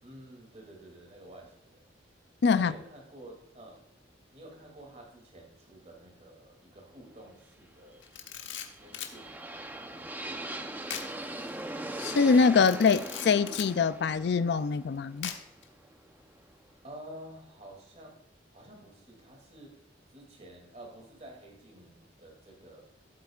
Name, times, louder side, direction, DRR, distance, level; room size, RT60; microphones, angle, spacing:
voice 1, 0.0-1.8 2.5-3.9 4.3-8.1 8.8-10.8 16.8-18.2 18.5-19.8 20.1-22.8, right 1 dB, 40° right, 2.7 m, -50 dB
voice 2, 2.4-2.7 12.0-15.3, left 5 dB, 65° left, 0.4 m, -24 dB
Camera, 8.0-9.2 10.9-11.1 11.5-11.6 12.6-13.7 15.2-15.6, left 9 dB, 85° left, 1.2 m, -39 dB
sound 1, 8.4-16.4, right 1 dB, 10° right, 0.7 m, -41 dB
16.0 x 8.1 x 2.4 m
head